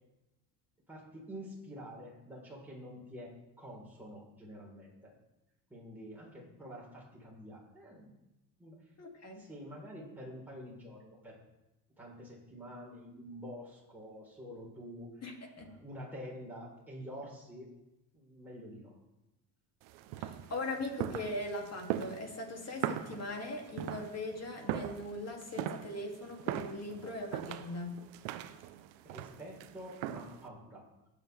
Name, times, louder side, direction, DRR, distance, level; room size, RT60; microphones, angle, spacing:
voice 1, 0.9-5.1 5.7-8.1 8.6-8.8 9.4-11.4 12.0-15.2 15.6-17.7 18.1-18.9 29.0-30.8, equal, 5° right, -4 dB, 3.9 m, -48 dB
voice 2, 9.0-9.4 15.2-15.7 20.2-27.9, left 2 dB, 35° left, 1 dB, 2.6 m, -40 dB
sound 1, 19.8-30.5, right 11 dB, 80° right, 0.8 m, -40 dB
19.0 x 6.9 x 3.4 m, 0.96 s
supercardioid pair, 95°, 47 cm